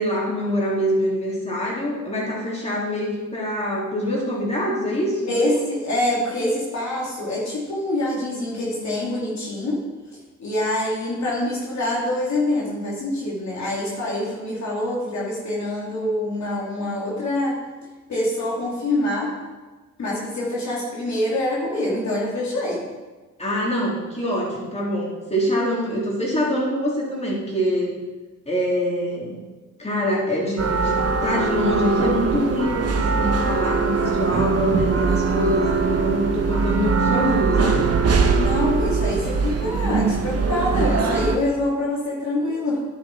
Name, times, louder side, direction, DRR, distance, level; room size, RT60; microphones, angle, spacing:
voice 1, 0.0-5.3 23.4-27.9 28.5-29.4 29.8-37.9, equal, 20° left, -5 dB, 3.6 m, -24 dB
voice 2, 5.3-9.8 10.4-17.5 18.1-19.3 20.0-22.9 38.4-42.8, left 1 dB, 60° left, -5 dB, 2.7 m, -25 dB
sound 1, 30.6-41.4, right 4 dB, 50° right, 1.2 m, -21 dB
10.5 x 7.6 x 4.5 m, 1.3 s
cardioid pair, 75°, 32 cm